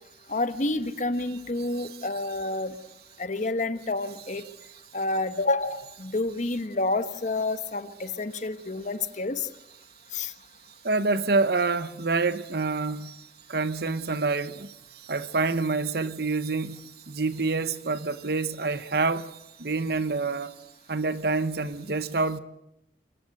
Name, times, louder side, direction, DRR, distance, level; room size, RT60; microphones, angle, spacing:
voice 1, 0.3-2.7 3.2-4.4 4.9-9.5 10.1-10.3, left 2 dB, 45° left, 1.2 m, -29 dB
voice 2, 10.8-14.7 15.0-20.6 20.9-22.4, right 3 dB, 60° right, 1.0 m, -27 dB
24.0 x 19.0 x 7.9 m
head